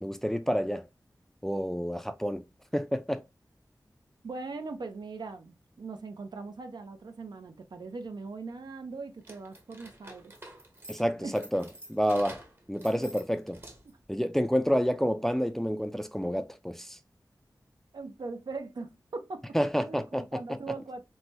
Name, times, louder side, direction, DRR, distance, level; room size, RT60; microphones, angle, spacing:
voice 1, 0.0-0.9 1.4-2.4 2.7-3.2 10.9-12.4 12.7-13.6 14.1-17.0 19.5-20.2 20.5-20.6, equal, 5° left, 0.3 m, -29 dB
voice 2, 4.2-10.3 11.2-11.4 13.0-13.1 17.9-19.6 19.9-21.0, right 3 dB, 80° right, 0.5 m, -40 dB
sound 1, 9.2-14.0, right 1 dB, 35° right, 0.8 m, -49 dB
3.1 x 2.1 x 2.7 m
wide cardioid pair, 70°, 7 cm